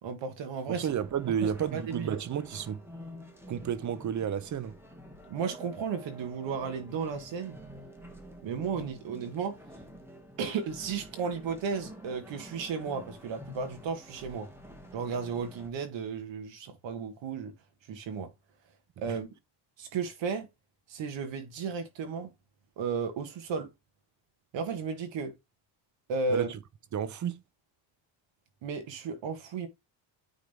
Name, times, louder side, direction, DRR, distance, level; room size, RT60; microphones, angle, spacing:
voice 1, 0.0-0.9 1.4-2.2 5.3-7.6 8.4-9.6 10.4-14.5 14.9-17.5 17.9-18.3 19.0-19.3 19.8-20.5 20.9-22.3 22.8-23.7 24.5-25.3 26.1-26.5 28.6-29.7, right 5 dB, 60° right, 1.6 m, -34 dB
sound 1, 0.7-15.7, equal, 5° right, 1.7 m, -49 dB
voice 2, 0.7-2.8 3.5-4.7 19.1-19.2 26.3-26.6 26.9-27.4, right 8 dB, 35° right, 0.7 m, -32 dB
9.4 x 3.7 x 3.4 m
cardioid pair, 115°, 50 cm